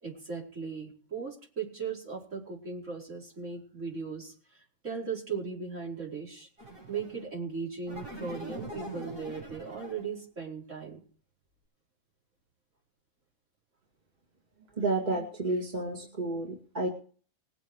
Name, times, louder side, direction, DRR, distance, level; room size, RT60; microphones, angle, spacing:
voice 1, 0.0-6.5 6.9-11.0, right 5 dB, 60° right, -3 dB, 5.3 m, -38 dB
sound 1, 6.6-7.3 7.9-10.1, right 1 dB, 85° right, 6.6 m, -42 dB
voice 2, 14.8-16.9, right 2 dB, 30° right, 0 dB, 2.5 m, -31 dB
21.0 x 7.9 x 4.8 m, 0.43 s
omnidirectional pair, 1.4 m